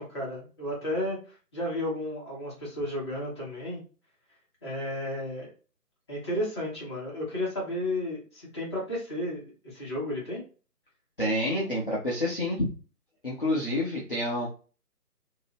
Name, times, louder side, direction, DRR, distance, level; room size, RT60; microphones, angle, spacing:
voice 1, 0.0-3.8 4.6-5.5 6.1-10.4, left 1 dB, 15° left, -6 dB, 1.3 m, -33 dB
voice 2, 11.2-12.7 13.2-14.5, left 1 dB, 35° left, -5 dB, 0.9 m, -28 dB
3.7 x 2.7 x 3.0 m, 0.36 s
figure-of-eight pair, 155°, 48 cm